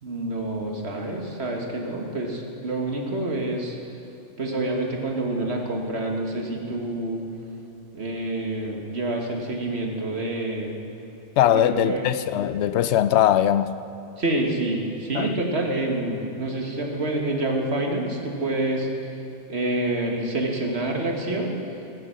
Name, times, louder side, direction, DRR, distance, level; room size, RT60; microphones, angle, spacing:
voice 1, 0.0-3.8 4.4-7.2 7.9-10.7 11.5-12.1 14.2-18.9 19.5-21.6, right 2 dB, 65° right, 1.8 m, -27 dB
voice 2, 11.4-13.8 15.1-15.3, left 11 dB, 75° left, 0.8 m, -20 dB
15.5 x 9.8 x 6.3 m
omnidirectional pair, 1.2 m